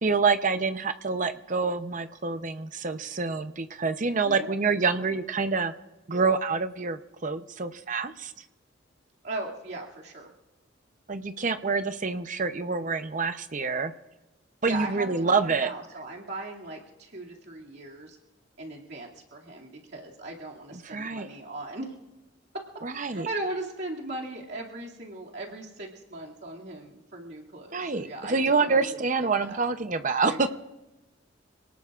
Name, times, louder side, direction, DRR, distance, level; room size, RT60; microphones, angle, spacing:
voice 1, 0.0-5.7 6.1-8.3 11.1-13.9 14.6-15.7 20.7-21.3 22.8-23.3 27.7-30.5, right 4 dB, 40° right, 9 dB, 0.8 m, -27 dB
voice 2, 4.2-4.6 4.9-5.1 9.2-10.3 14.7-18.2 18.6-21.9 22.9-29.6 30.2-30.5, right 2 dB, 60° right, -3 dB, 2.5 m, -38 dB
27.5 x 18.5 x 2.5 m, 1.1 s
head